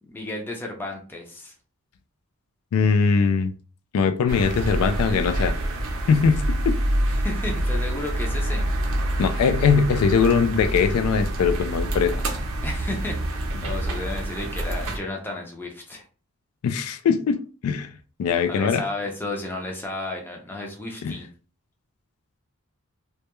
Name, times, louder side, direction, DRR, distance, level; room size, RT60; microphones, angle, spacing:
voice 1, 0.0-1.5 7.2-8.7 12.6-16.0 18.5-21.3, left 2 dB, 10° left, 0.4 m, -33 dB
voice 2, 2.7-3.5 3.9-5.5 6.1-6.8 9.2-12.1 13.6-13.7 16.6-17.9 18.2-18.8 21.0-21.2, left 5 dB, 80° left, 0.3 m, -21 dB
sound 1, 4.3-15.0, right 1 dB, 70° right, 0.5 m, -26 dB
2.2 x 2.2 x 2.9 m
head